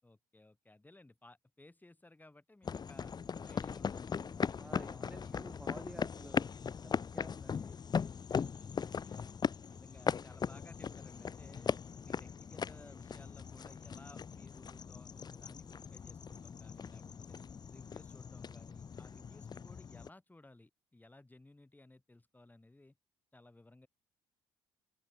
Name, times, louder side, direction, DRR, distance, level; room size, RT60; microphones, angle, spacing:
voice 1, 0.0-3.1 3.4-5.3 8.5-9.4 9.7-17.4 17.7-23.0 23.3-23.9, left 2 dB, 15° left, 7.0 m, -59 dB
sound 1, 2.6-20.1, left 6 dB, 35° left, 0.9 m, -39 dB
voice 2, 4.5-6.5 6.8-7.8, right 1 dB, 5° right, 0.9 m, -52 dB
open air
hypercardioid pair, 50°, 12 cm